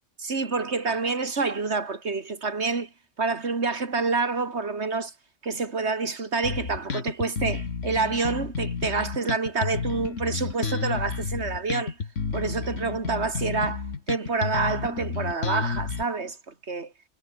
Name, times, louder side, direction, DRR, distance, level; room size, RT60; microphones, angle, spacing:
voice 1, 0.2-2.9 3.2-5.1 5.4-12.0 12.3-16.9, right 4 dB, 60° right, 2.7 m, -28 dB
Bass guitar, 6.4-16.0, left 5 dB, 75° left, 2.2 m, -31 dB
omnidirectional pair, 1.3 m